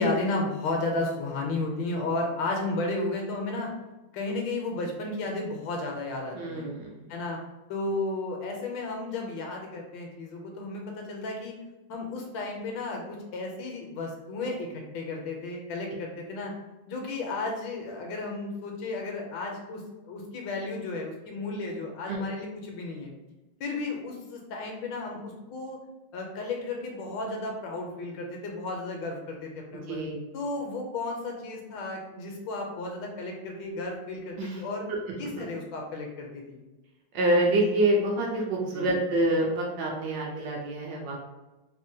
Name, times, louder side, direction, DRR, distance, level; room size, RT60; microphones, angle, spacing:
voice 1, 0.0-3.7 4.1-6.7 7.1-7.4 7.7-11.5 11.9-16.5 16.9-23.1 23.6-25.8 26.1-30.0 30.3-34.9 35.2-36.6 38.7-38.9, left 2 dB, 75° left, 1 dB, 1.2 m, -33 dB
voice 2, 6.3-7.0 22.1-22.3 29.9-30.2 34.4-34.6 35.4-35.5 37.1-41.2, right 1 dB, 75° right, -1 dB, 1.1 m, -26 dB
3.4 x 2.1 x 2.6 m, 1.1 s
omnidirectional pair, 2.2 m